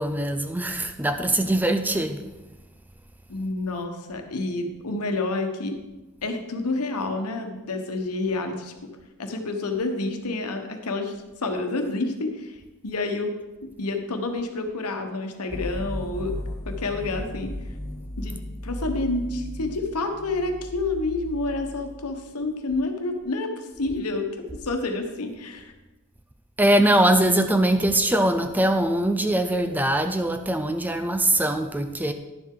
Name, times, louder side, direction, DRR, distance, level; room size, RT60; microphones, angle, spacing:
voice 1, 0.0-2.2 26.6-32.1, right 1 dB, 10° right, 0.4 m, -22 dB
voice 2, 3.3-5.8 6.2-8.7 9.2-12.6 12.8-13.3 13.8-16.4 16.6-17.5 18.2-18.4 18.6-25.7, left 2 dB, 85° left, 1.2 m, -29 dB
sound 1, 15.5-22.3, left 1 dB, 15° left, 1.9 m, -35 dB
11.0 x 7.4 x 3.8 m
head